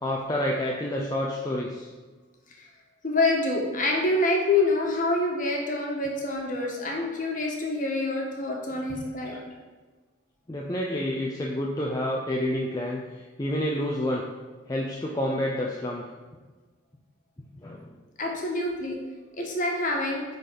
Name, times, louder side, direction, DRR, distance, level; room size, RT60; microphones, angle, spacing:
voice 1, 0.0-1.9 8.7-8.8 10.5-14.2 14.7-16.1 17.6-18.0, left 1 dB, 20° left, -2 dB, 0.6 m, -29 dB
voice 2, 3.0-9.3 18.2-19.0 19.3-20.2, left 2 dB, 40° left, 0 dB, 1.5 m, -26 dB
9.8 x 4.0 x 5.1 m, 1.3 s
head